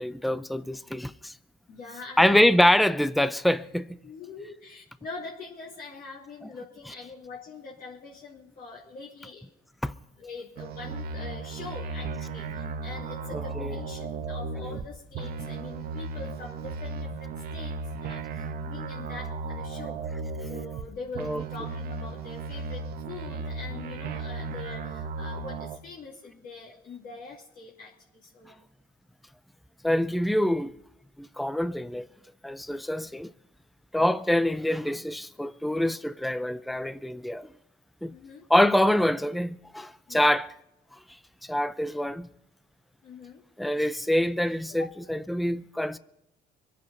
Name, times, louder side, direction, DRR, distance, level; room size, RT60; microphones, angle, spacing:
voice 1, 0.0-1.3 2.2-4.0 9.8-9.9 13.3-13.8 21.2-21.4 29.8-30.7 31.2-32.0 32.4-33.3 33.9-37.5 38.0-38.1 38.5-40.5 41.4-42.3 43.6-46.0, left 1 dB, ahead, 0.5 m, -25 dB
voice 2, 1.7-2.5 4.0-9.5 10.2-28.6 38.1-38.5 40.1-40.4 43.0-43.4 44.8-44.9, left 4 dB, 55° left, 2.9 m, -43 dB
sound 1, 10.6-14.9 15.1-20.9 21.1-25.8, right 4 dB, 65° right, 1.3 m, -35 dB
24.5 x 8.5 x 5.3 m
cardioid pair, 110°, 17 cm